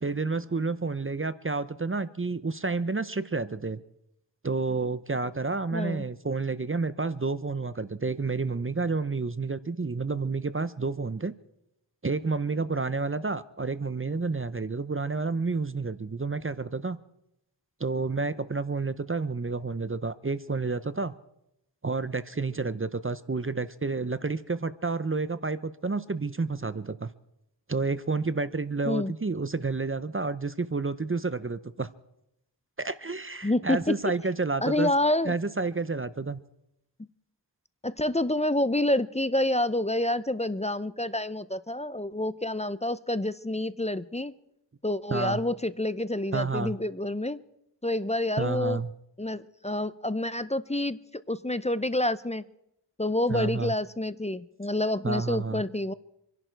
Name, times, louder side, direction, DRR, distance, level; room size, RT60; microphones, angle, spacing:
voice 1, 0.0-3.8 4.4-11.3 12.0-17.0 17.8-21.1 21.8-27.1 27.7-31.9 32.8-34.9 35.2-36.4 45.1-45.4 46.3-46.7 48.4-48.9 53.3-53.7 55.0-55.6, right 3 dB, 30° right, 15 dB, 0.6 m, -30 dB
voice 2, 5.7-6.1 28.9-29.1 33.4-33.9 34.6-35.3 37.8-44.3 44.8-47.4 47.8-48.8 49.2-52.4 53.0-55.9, left 1 dB, 15° left, 15 dB, 0.5 m, -28 dB
26.0 x 11.0 x 4.5 m, 0.83 s
wide cardioid pair, 45°, 44 cm